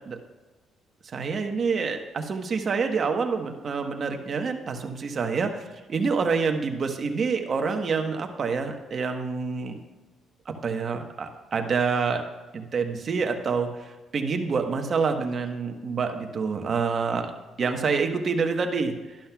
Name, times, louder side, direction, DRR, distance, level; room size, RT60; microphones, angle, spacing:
voice 1, 1.0-5.6 5.9-9.8 10.6-12.2 12.5-17.3 17.6-18.9, right 5 dB, 50° right, 5 dB, 1.1 m, -27 dB
11.5 x 11.5 x 2.3 m, 1.2 s
cardioid pair, 90°, 0 cm